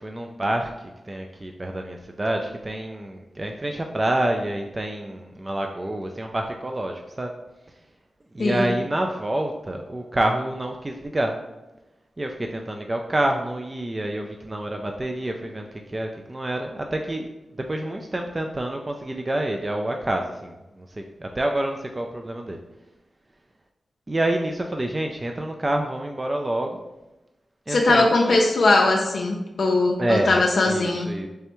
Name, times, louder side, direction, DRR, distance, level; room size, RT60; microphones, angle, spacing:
voice 1, 0.0-7.3 8.3-11.3 12.2-17.3 17.7-22.6 24.1-26.8 27.7-28.4 30.0-30.3 30.7-31.3, right 1 dB, 30° right, 3 dB, 0.3 m, -27 dB
voice 2, 8.4-8.7 27.7-31.1, left 2 dB, 70° left, 0 dB, 0.4 m, -20 dB
3.3 x 3.2 x 3.0 m, 0.99 s
cardioid pair, 60°, 0 cm